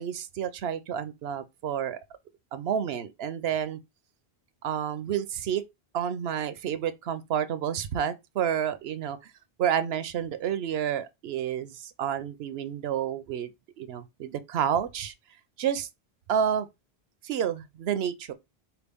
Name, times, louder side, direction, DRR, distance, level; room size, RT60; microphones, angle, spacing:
voice 1, 0.0-2.0 2.5-3.8 4.6-5.6 5.9-9.3 9.6-13.5 13.8-15.1 15.6-15.9 16.3-16.7 17.2-18.3, right 9 dB, 70° right, 0.8 m, -30 dB
4.4 x 3.0 x 3.4 m
omnidirectional pair, 1.1 m